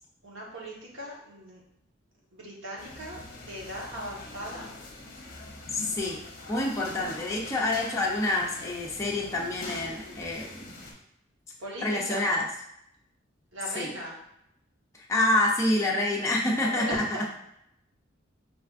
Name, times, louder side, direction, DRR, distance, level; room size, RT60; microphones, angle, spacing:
voice 1, 0.2-1.6 2.3-4.7 11.6-12.3 13.5-14.1 16.6-17.2, equal, 75° right, -4 dB, 1.3 m, -38 dB
sound 1, 2.8-10.9, left 2 dB, 50° left, 0.8 m, -43 dB
voice 2, 5.7-6.2 6.5-10.8 11.8-12.5 13.7-13.9 15.1-17.0, left 1 dB, 15° left, -3 dB, 0.6 m, -27 dB
5.4 x 3.3 x 2.5 m, 0.77 s
head